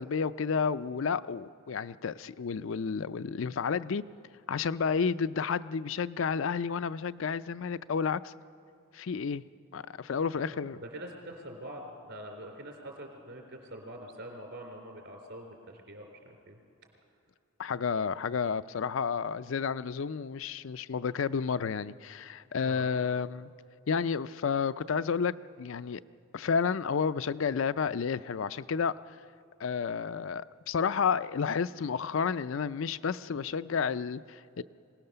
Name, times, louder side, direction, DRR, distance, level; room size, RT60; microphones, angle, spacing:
voice 1, 0.0-4.0 4.5-8.3 8.9-9.4 9.7-10.8 17.6-23.5 23.9-26.0 26.3-28.9 29.6-34.6, left 6 dB, 65° left, 15 dB, 0.4 m, -31 dB
voice 2, 10.5-16.6 22.6-22.9, right 1 dB, 60° right, 2 dB, 3.8 m, -45 dB
25.0 x 18.0 x 6.8 m, 2.4 s
head